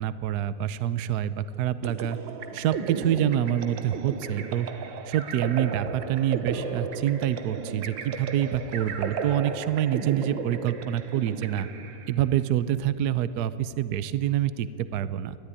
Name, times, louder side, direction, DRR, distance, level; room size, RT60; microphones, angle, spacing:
voice 1, 0.0-2.2 2.5-4.7 5.1-11.7 12.1-15.4, right 11 dB, 70° right, 14 dB, 1.1 m, -26 dB
sound 1, 1.8-12.3, right 5 dB, 85° right, 1.9 m, -35 dB
sound 2, 6.5-7.9, left 2 dB, 10° left, 2.7 m, -54 dB
19.5 x 13.5 x 9.9 m, 2.4 s
omnidirectional pair, 2.0 m